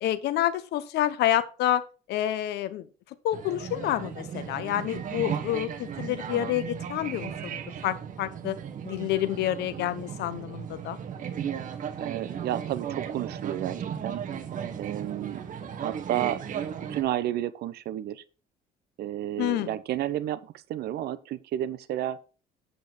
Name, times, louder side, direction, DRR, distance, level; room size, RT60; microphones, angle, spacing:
voice 1, 0.0-1.8 2.1-2.9 3.2-8.6 8.8-11.0 19.4-19.7, left 13 dB, 80° left, 1.0 m, -28 dB
sound 1, 3.3-17.0, right 8 dB, 50° right, 1.6 m, -36 dB
voice 2, 12.0-14.2 14.8-15.4 15.8-16.4 16.9-18.2 19.0-22.2, right 12 dB, 70° right, 1.0 m, -31 dB
8.2 x 8.0 x 4.4 m
cardioid pair, 110°, 17 cm